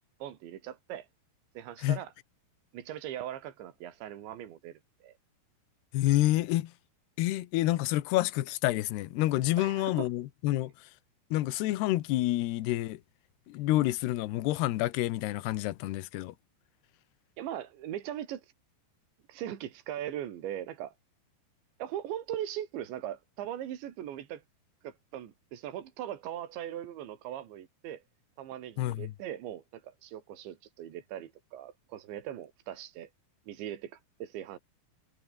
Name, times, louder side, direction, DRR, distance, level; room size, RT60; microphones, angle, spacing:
voice 1, 0.2-1.1 1.6-2.1 2.7-5.1 9.6-10.1 17.4-18.5 19.3-20.9 21.8-24.4 24.8-28.0 28.4-33.1 33.5-34.6, right 11 dB, 80° right, 4.6 m, -40 dB
voice 2, 5.9-6.7 7.2-10.7 11.3-13.0 13.5-16.3 28.8-29.1, left 16 dB, 75° left, 3.0 m, -28 dB
omnidirectional pair, 5.1 m